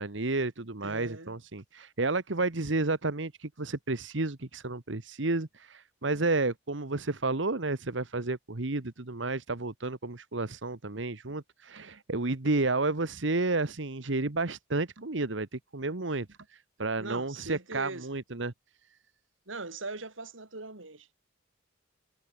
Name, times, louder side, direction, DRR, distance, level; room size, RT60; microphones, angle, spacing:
voice 1, 0.0-18.5, right 3 dB, 70° right, 1.4 m, -31 dB
voice 2, 0.8-1.3 17.0-18.1 19.5-21.1, right 3 dB, 85° right, 4.2 m, -41 dB
head